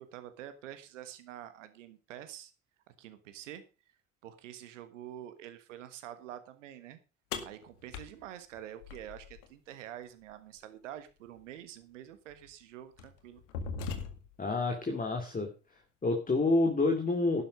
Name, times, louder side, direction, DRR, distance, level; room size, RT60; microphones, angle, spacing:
voice 1, 0.0-2.5 3.0-3.6 4.2-7.0 7.4-13.4, right 11 dB, 75° right, 10 dB, 1.5 m, -47 dB
sound 1, 7.3-9.5 11.4-11.5 12.3-12.5 13.0-14.5, left 5 dB, 70° left, 2.1 m, -40 dB
voice 2, 14.4-15.5 16.0-17.4, left 2 dB, 20° left, 4 dB, 2.6 m, -28 dB
12.0 x 10.0 x 5.3 m, 0.31 s
figure-of-eight pair, 60°, 37 cm